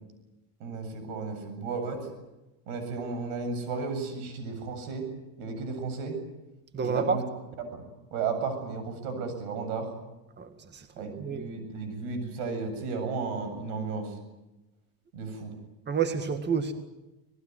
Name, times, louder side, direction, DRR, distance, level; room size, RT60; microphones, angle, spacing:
voice 1, 0.6-2.1 2.7-5.1 5.4-6.2 6.8-7.2 7.6-7.8 8.1-9.9 11.0-14.2 15.1-15.5, right 4 dB, 85° right, 8 dB, 7.9 m, -34 dB
voice 2, 6.7-7.2 10.4-11.4 15.9-16.7, right 5 dB, 25° right, 8 dB, 2.0 m, -29 dB
26.0 x 19.5 x 9.5 m, 1.0 s
cardioid pair, 125°, 44 cm